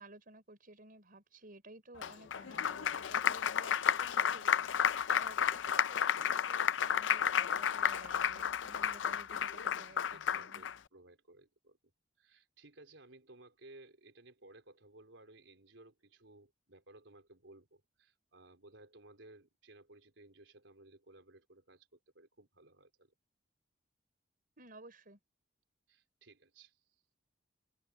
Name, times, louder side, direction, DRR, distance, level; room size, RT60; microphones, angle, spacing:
voice 1, 0.0-4.6 5.1-10.6 24.6-25.2, right 2 dB, 50° right, 5.1 m, -55 dB
Applause, 2.0-10.7, left 8 dB, 80° left, 0.5 m, -32 dB
voice 2, 10.0-11.8 12.2-23.1 25.9-27.0, right 2 dB, 85° right, 3.9 m, -59 dB
head